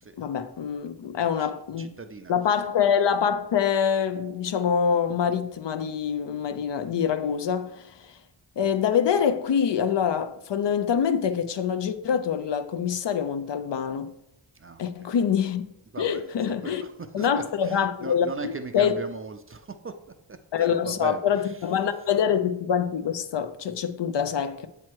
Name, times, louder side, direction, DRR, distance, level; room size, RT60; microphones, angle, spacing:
voice 1, 0.2-1.9 2.3-8.0 8.6-14.1 14.8-15.7 16.0-16.8 17.1-18.9 20.5-24.7, left 7 dB, 65° left, 0.6 m, -25 dB
voice 2, 1.8-2.7 14.5-15.1 15.9-19.9 20.6-22.3, right 4 dB, 30° right, 0.4 m, -39 dB
7.5 x 3.0 x 4.5 m
wide cardioid pair, 85°, 46 cm